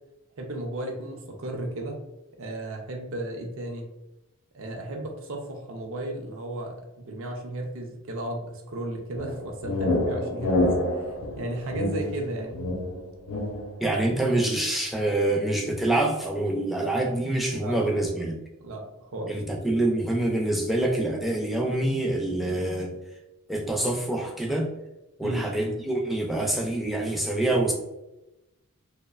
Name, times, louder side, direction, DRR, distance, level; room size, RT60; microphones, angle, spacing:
voice 1, 0.4-2.0 2.4-3.8 4.5-12.7 17.5-18.0 18.6-19.4 25.2-25.5, right 1 dB, 65° right, 2 dB, 0.5 m, -34 dB
sound 1, 9.2-13.8, left 1 dB, 70° left, 0.5 m, -27 dB
voice 2, 13.8-18.4 19.3-22.9 23.5-24.7 25.2-27.7, right 1 dB, ahead, -1 dB, 0.3 m, -26 dB
2.7 x 2.1 x 2.3 m, 0.95 s
head